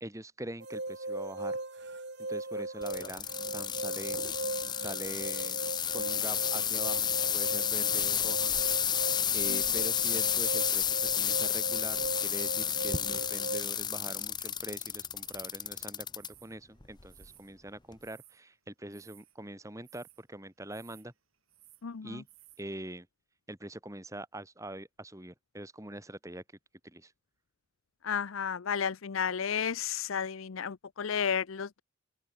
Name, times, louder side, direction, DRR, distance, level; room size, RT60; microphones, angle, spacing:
voice 1, 0.0-1.6 2.3-3.3 3.5-4.2 4.8-5.6 5.9-8.5 9.3-21.1 22.0-22.3 22.6-23.1 23.5-26.4 26.8-27.1, right 1 dB, 15° right, 2.1 m, -43 dB
sound 1, 0.6-13.6, right 2 dB, 55° right, 2.7 m, -38 dB
sound 2, 2.8-16.3 16.8-17.3 17.9-18.0, left 9 dB, 20° left, 0.8 m, -31 dB
sound 3, 14.3-14.8 15.1-15.7 16.2-16.6 17.1-17.5 17.9-18.4 18.9-19.4 19.8-20.2 20.7-21.1 21.3-21.9 22.3-22.6, right 17 dB, 85° right, 6.1 m, -58 dB
voice 2, 21.8-22.2 28.0-31.8, left 7 dB, 80° left, 0.6 m, -32 dB
open air
head